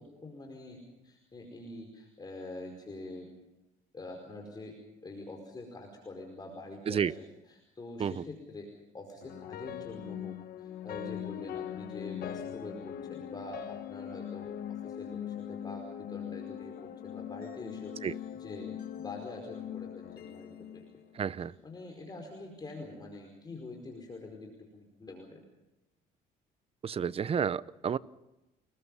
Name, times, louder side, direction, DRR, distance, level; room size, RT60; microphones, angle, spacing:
voice 1, 0.0-3.3 3.9-4.8 5.0-7.0 7.7-8.7 8.9-20.8 21.6-25.4, left 2 dB, 25° left, 2 dB, 5.0 m, -45 dB
sound 1, 9.2-21.5, left 10 dB, 60° left, 1.2 m, -41 dB
voice 2, 21.1-21.5 26.8-28.0, right 7 dB, 35° right, 18 dB, 0.7 m, -31 dB
29.5 x 20.5 x 5.6 m, 0.96 s
cardioid pair, 110°, 17 cm